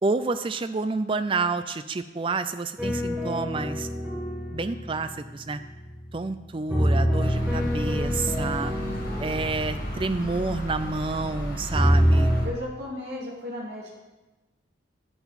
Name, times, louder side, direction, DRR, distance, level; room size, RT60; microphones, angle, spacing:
voice 1, 0.0-3.9 4.5-5.6 6.1-8.7 9.2-12.3, right 3 dB, 25° right, 11 dB, 0.4 m, -29 dB
sound 1, 2.8-6.1 6.7-11.3 11.7-12.4, equal, 5° right, 1.6 m, -26 dB
sound 2, 7.2-12.5, equal, 45° left, 1.9 m, -34 dB
voice 2, 12.4-14.0, left 1 dB, 60° right, -5 dB, 2.4 m, -35 dB
9.1 x 8.6 x 4.1 m, 1.1 s
head